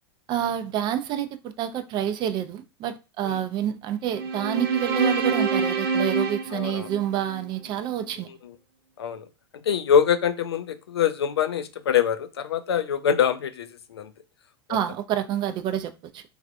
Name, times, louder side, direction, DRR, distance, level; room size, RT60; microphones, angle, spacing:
voice 1, 0.3-8.3 14.7-16.2, right 10 dB, 35° right, 0.4 m, -28 dB
sound 1, 4.1-7.5, right 5 dB, 70° right, 0.8 m, -26 dB
voice 2, 6.5-6.9 8.3-8.5 9.0-9.3 9.6-14.1, left 8 dB, 80° left, 0.4 m, -24 dB
3.2 x 2.4 x 2.5 m
hypercardioid pair, 100°, 13 cm